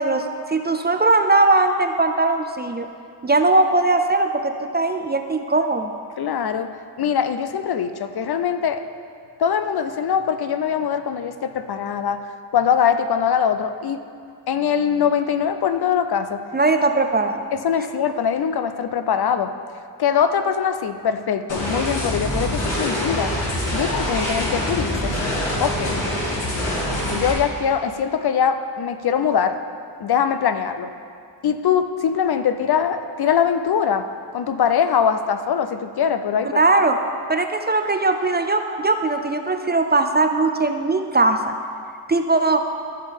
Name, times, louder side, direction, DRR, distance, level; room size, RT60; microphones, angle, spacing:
voice 1, 0.0-2.9 3.2-5.9 16.5-17.4 36.5-37.0 37.3-41.5 42.1-42.6, right 2 dB, 25° right, 6 dB, 0.5 m, -19 dB
voice 2, 6.2-6.7 7.0-8.8 9.4-12.2 12.5-14.0 14.5-16.4 17.5-19.5 20.0-23.3 23.7-25.1 25.6-26.0 27.1-29.6 30.0-30.9 31.4-34.1 34.3-36.6, left 7 dB, 60° left, 9 dB, 0.6 m, -22 dB
sound 1, 21.5-27.3, left 1 dB, 75° left, 2.6 m, -24 dB
14.0 x 6.4 x 3.5 m, 2.3 s
cardioid pair, 85°, 45 cm